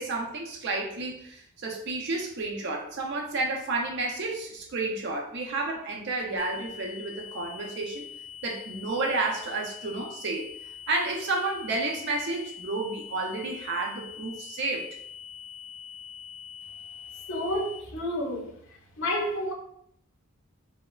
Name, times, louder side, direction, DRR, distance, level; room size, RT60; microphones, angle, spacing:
voice 1, 0.0-8.0 8.4-14.9, right 3 dB, 55° right, 0.4 m, -31 dB
sound 1, 6.4-17.8, left 8 dB, 10° left, 0.9 m, -44 dB
voice 2, 17.3-18.6 19.0-19.5, left 1 dB, 60° left, 0.6 m, -30 dB
3.1 x 2.0 x 2.2 m
head